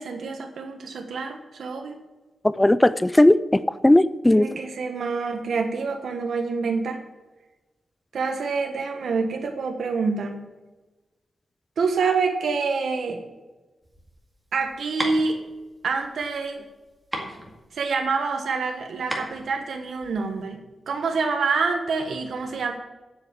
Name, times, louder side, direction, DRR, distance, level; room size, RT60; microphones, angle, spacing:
voice 1, 0.0-2.0 4.3-7.0 8.1-10.4 11.8-13.2 14.5-15.4 15.8-16.6 17.7-22.7, right 4 dB, 80° right, 3 dB, 1.3 m, -27 dB
voice 2, 2.4-4.5, left 1 dB, 10° left, 16 dB, 0.4 m, -17 dB
sound 1, 13.8-20.4, right 1 dB, 10° right, 2.1 m, -36 dB
8.3 x 8.0 x 7.4 m, 1.1 s
wide cardioid pair, 115°, 0 cm